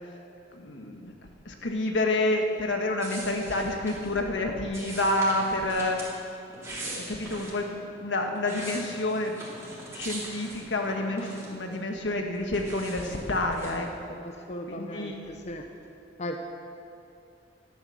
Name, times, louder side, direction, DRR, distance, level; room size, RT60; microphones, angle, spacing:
voice 1, 0.6-1.1 1.4-6.0 6.8-9.7 9.9-13.9 14.7-15.2, left 2 dB, 85° left, 3 dB, 1.5 m, -29 dB
sound 1, 3.0-4.1 4.7-6.1 6.5-7.6 8.2-11.8 12.1-13.8, right 1 dB, 15° right, 3.2 m, -41 dB
voice 2, 14.2-15.6 16.2-16.4, left 1 dB, 40° left, 4 dB, 0.8 m, -37 dB
12.5 x 10.5 x 6.5 m, 2.6 s
head